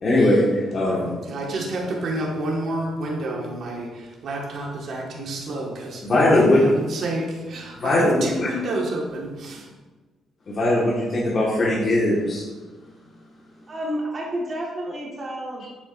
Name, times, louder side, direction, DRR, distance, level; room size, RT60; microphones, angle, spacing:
voice 1, 0.0-1.1 6.0-6.7 7.8-8.5 10.5-12.4, left 1 dB, 45° left, -7 dB, 1.7 m, -20 dB
voice 2, 1.3-6.3 6.6-9.7, right 1 dB, 65° right, -2 dB, 1.8 m, -29 dB
voice 3, 13.7-15.6, right 1 dB, 35° right, -3 dB, 1.7 m, -30 dB
8.4 x 7.0 x 2.7 m, 1.3 s
cardioid pair, 90°, 0 cm